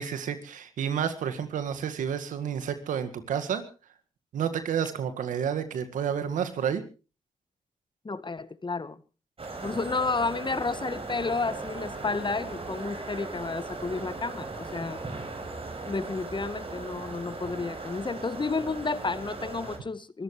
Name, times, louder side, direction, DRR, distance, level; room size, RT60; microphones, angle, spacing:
voice 1, 0.0-3.6 4.3-6.8, right 8 dB, 85° right, 1.9 m, -30 dB
voice 2, 8.0-9.0 9.6-15.0 15.9-20.2, left 3 dB, 35° left, 1.5 m, -31 dB
sound 1, 9.4-19.8, right 3 dB, 45° right, 4.8 m, -38 dB
24.5 x 14.5 x 3.2 m
supercardioid pair, 40°, 13 cm